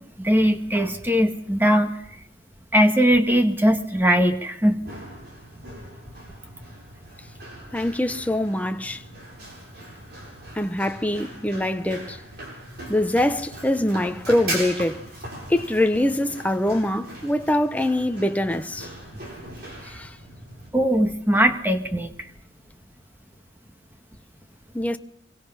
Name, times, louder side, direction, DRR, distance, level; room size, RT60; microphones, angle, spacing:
voice 1, 0.2-1.9 2.7-4.8 20.7-22.1, equal, 10° right, 1.9 m, -20 dB
Run, 4.6-20.7, right 1 dB, 60° right, 7.9 m, -39 dB
voice 2, 7.7-9.0 10.5-12.2 12.9-15.0 15.5-18.9 19.8-20.1 24.7-25.0, left 1 dB, 10° left, 0.9 m, -24 dB
25.5 x 23.5 x 5.7 m
head